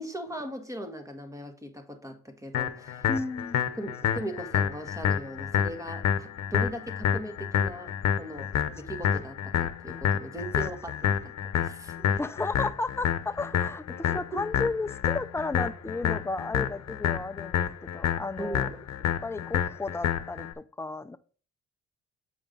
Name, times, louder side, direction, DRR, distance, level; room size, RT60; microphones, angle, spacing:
voice 1, 0.0-3.1 3.8-12.2 14.1-14.2 18.4-18.8, equal, 10° right, 1.4 m, -39 dB
sound 1, 2.5-20.5, left 9 dB, 60° left, 0.9 m, -29 dB
voice 2, 3.1-3.6 12.2-18.7 19.2-21.2, left 3 dB, 10° left, 0.5 m, -33 dB
8.0 x 5.1 x 3.8 m
cardioid pair, 90°, 30 cm